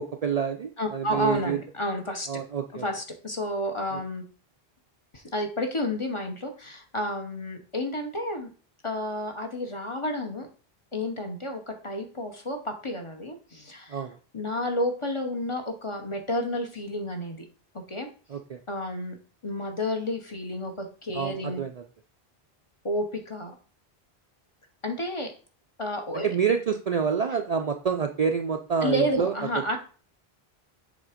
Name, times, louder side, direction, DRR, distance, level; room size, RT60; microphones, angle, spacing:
voice 1, 0.0-1.6 2.3-2.8 13.9-14.1 18.3-18.6 21.1-21.7 26.2-29.3, right 6 dB, 50° right, 5 dB, 0.5 m, -27 dB
voice 2, 0.8-2.4 2.7-4.2 5.1-8.5 8.8-10.5 10.9-14.1 14.3-17.4 17.9-18.1 18.7-19.2 19.4-21.6 22.8-23.6 24.8-25.3 25.8-26.3 28.8-29.8, left 1 dB, 30° left, 4 dB, 0.9 m, -31 dB
7.3 x 3.5 x 5.0 m, 0.39 s
omnidirectional pair, 1.0 m